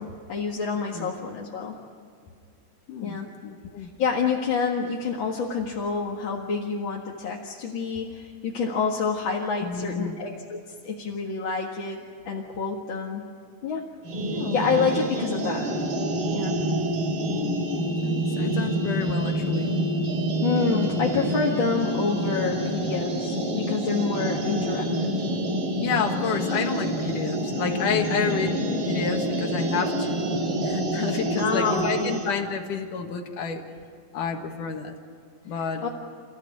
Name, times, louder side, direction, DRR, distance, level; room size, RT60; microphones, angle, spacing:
voice 1, 0.0-1.7 3.0-3.3 3.8-12.0 12.2-13.2 13.6-13.8 14.5-15.7 16.3-16.5 20.4-25.1 31.4-32.1 35.8-35.9, left 5 dB, 45° left, -2 dB, 2.2 m, -28 dB
voice 2, 0.7-1.1 2.9-3.9 9.6-10.2 14.2-14.6 17.3-19.7 25.8-30.2 30.6-33.6 34.1-35.0 35.4-35.9, left 6 dB, 85° left, 3 dB, 3.1 m, -30 dB
sound 1, 14.0-32.3, right 1 dB, 45° right, 3.3 m, -27 dB
29.5 x 15.5 x 9.7 m, 2.2 s
omnidirectional pair, 3.6 m